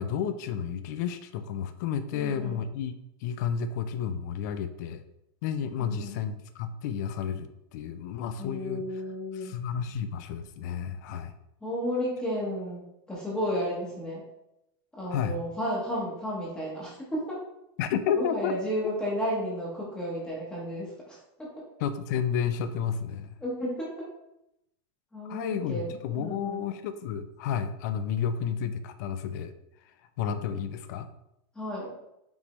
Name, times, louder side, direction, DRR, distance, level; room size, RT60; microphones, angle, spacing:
voice 1, 0.0-2.9 3.2-5.0 5.4-8.9 9.4-11.3 15.1-15.4 17.8-18.5 21.8-23.4 25.3-29.5 30.2-31.1, left 7 dB, 40° left, 10 dB, 0.4 m, -31 dB
voice 2, 2.1-2.6 5.8-6.2 8.4-9.6 11.6-14.2 14.9-17.4 18.1-21.6 23.4-24.1 25.1-26.7 31.5-31.9, equal, 5° left, -5 dB, 0.8 m, -33 dB
5.1 x 3.3 x 3.0 m, 0.83 s
supercardioid pair, 170°, 14 cm